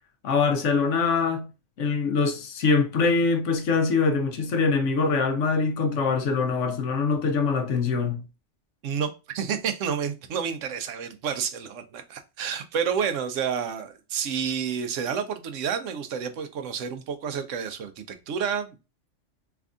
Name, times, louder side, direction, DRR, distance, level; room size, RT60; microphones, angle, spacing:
voice 1, 0.2-1.5 1.8-8.2, left 4 dB, 80° left, 1.1 m, -23 dB
voice 2, 8.8-18.8, right 7 dB, 90° right, 1.0 m, -30 dB
3.4 x 2.5 x 3.5 m
omnidirectional pair, 1.2 m